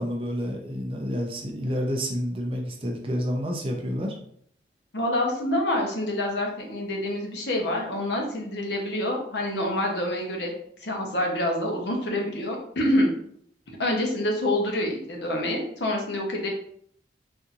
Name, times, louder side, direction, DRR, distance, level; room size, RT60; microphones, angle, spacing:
voice 1, 0.0-4.2, equal, 30° right, 1 dB, 0.5 m, -29 dB
voice 2, 4.9-10.5 10.8-13.1 13.8-16.5, left 1 dB, 60° left, 0 dB, 0.9 m, -27 dB
4.2 x 2.7 x 2.4 m, 0.65 s
head